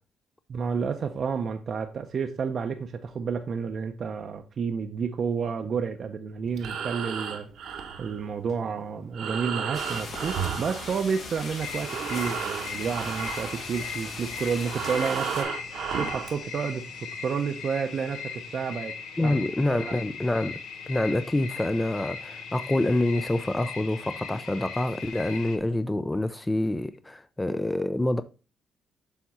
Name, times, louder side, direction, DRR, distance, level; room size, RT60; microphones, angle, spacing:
voice 1, 0.5-7.5 8.0-15.5 16.0-16.9 17.2-18.9 19.2-19.4 19.7-19.9, right 6 dB, 50° right, 0.6 m, -30 dB
Breathing, 6.4-11.4 11.7-16.4, right 7 dB, 75° right, 0.9 m, -34 dB
sound 1, 9.7-15.4, left 3 dB, 65° left, 1.7 m, -39 dB
sound 2, 11.6-25.6, left 6 dB, 85° left, 0.9 m, -39 dB
voice 2, 19.2-20.6 20.9-28.2, left 1 dB, 15° left, 0.4 m, -27 dB
7.0 x 3.6 x 4.2 m
cardioid pair, 90°, 0 cm